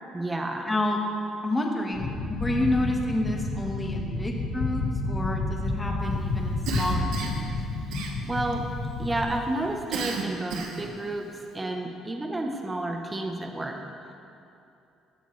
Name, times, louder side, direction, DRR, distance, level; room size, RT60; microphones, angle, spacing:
voice 1, 0.1-0.7 7.9-8.6 9.0-13.8, right 2 dB, 15° right, 3 dB, 0.8 m, -31 dB
voice 2, 0.7-1.0 1.4-7.4, left 1 dB, 10° left, 1 dB, 1.3 m, -29 dB
sound 1, 1.9-9.4, left 2 dB, 45° left, 1.8 m, -30 dB
Cough, 6.7-7.5 7.9-8.5 9.9-10.9, right 5 dB, 80° right, 1.4 m, -33 dB
15.0 x 13.0 x 3.2 m, 2.7 s
cardioid pair, 160°, 0 cm